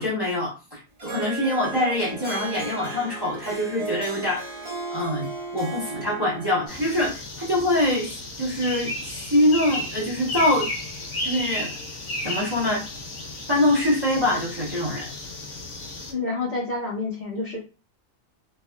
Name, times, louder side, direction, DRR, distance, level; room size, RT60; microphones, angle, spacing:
voice 1, 0.0-4.4 4.9-10.7 11.2-11.7 12.2-12.9 13.5-15.1, left 1 dB, 20° right, -7 dB, 1.0 m, -24 dB
Harp, 1.0-6.8, right 3 dB, 35° right, 0.4 m, -35 dB
sound 1, 6.7-16.1, left 2 dB, 75° left, 1.3 m, -34 dB
voice 2, 16.0-17.6, left 3 dB, 45° left, -5 dB, 1.1 m, -28 dB
3.4 x 2.5 x 2.2 m, 0.32 s
omnidirectional pair, 1.4 m